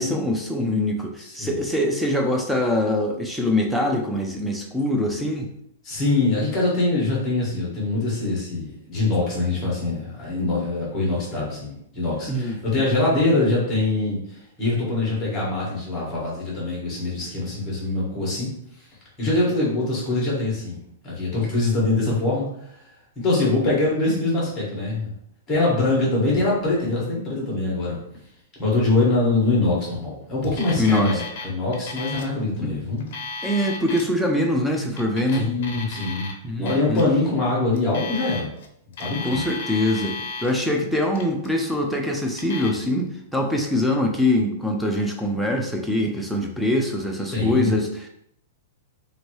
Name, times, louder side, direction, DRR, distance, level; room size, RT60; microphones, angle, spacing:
voice 1, 0.0-5.5 12.3-12.6 30.8-31.2 32.6-33.0 33.4-35.6 36.4-37.0 39.2-48.1, left 1 dB, ahead, 1 dB, 0.4 m, -23 dB
voice 2, 5.8-18.5 19.2-20.8 21.0-22.5 23.1-25.1 25.5-28.0 28.6-33.1 35.3-36.3 36.6-38.5 39.0-39.4 47.3-47.7, left 2 dB, 20° left, -4 dB, 1.3 m, -23 dB
Alarm, 30.4-31.4 31.7-32.3 32.9-34.0 34.8-36.3 36.6-37.0 37.8-38.7 38.9-40.5 41.0-41.5 42.3-42.7, left 4 dB, 55° left, 0.6 m, -34 dB
2.9 x 2.6 x 3.0 m, 0.72 s
hypercardioid pair, 155°, 0 cm